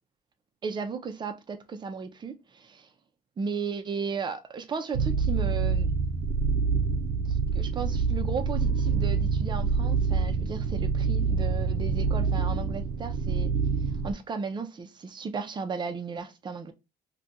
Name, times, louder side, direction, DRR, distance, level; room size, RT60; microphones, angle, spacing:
voice 1, 0.6-2.9 3.4-5.9 7.5-13.5 14.0-16.7, right 5 dB, 25° right, 0.5 m, -35 dB
sound 1, 4.9-14.1, right 5 dB, 85° right, 0.5 m, -26 dB
2.4 x 2.3 x 4.0 m
cardioid pair, 110°, 17 cm